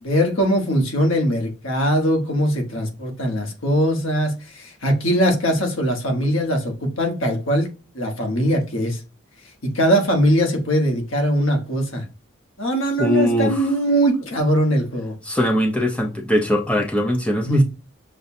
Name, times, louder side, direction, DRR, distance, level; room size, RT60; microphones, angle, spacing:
voice 1, 0.0-7.7 7.9-9.0 9.6-12.0 12.6-15.1 17.4-17.6, equal, 85° left, 1.2 m, -21 dB
voice 2, 13.0-13.7 15.2-17.6, equal, 5° left, 0.7 m, -21 dB
6.5 x 2.3 x 2.6 m
head